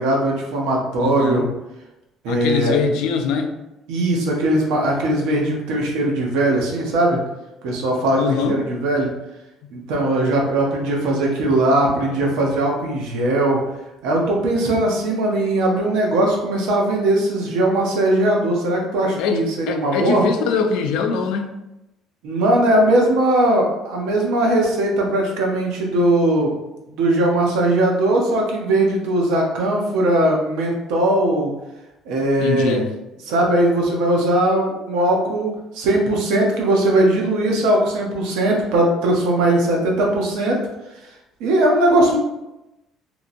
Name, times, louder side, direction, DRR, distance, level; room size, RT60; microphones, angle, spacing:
voice 1, 0.0-1.5 2.2-2.8 3.9-7.2 7.6-9.1 9.7-13.6 14.0-20.2 22.2-26.5 26.9-31.5 32.1-32.8 33.3-40.6 41.4-42.2, right 1 dB, 90° right, 0 dB, 0.8 m, -19 dB
voice 2, 1.0-1.5 2.3-3.5 8.2-8.6 19.2-21.6 32.4-32.9, left 5 dB, 85° left, 6 dB, 0.4 m, -22 dB
2.9 x 2.7 x 2.6 m, 0.94 s
cardioid pair, 135°, 0 cm